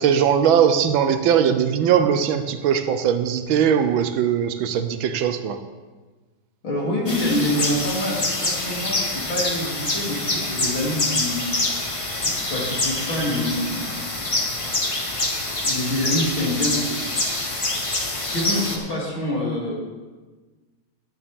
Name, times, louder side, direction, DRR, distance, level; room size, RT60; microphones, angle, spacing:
voice 1, 0.0-5.6, right 8 dB, 75° right, 9 dB, 1.4 m, -20 dB
voice 2, 6.6-11.4 12.2-14.4 14.9-15.0 15.6-17.1 18.2-19.7, left 1 dB, 70° left, -5 dB, 3.7 m, -26 dB
sound 1, 7.1-18.8, left 2 dB, 30° left, 0.6 m, -26 dB
12.5 x 9.5 x 3.6 m, 1.3 s
omnidirectional pair, 2.2 m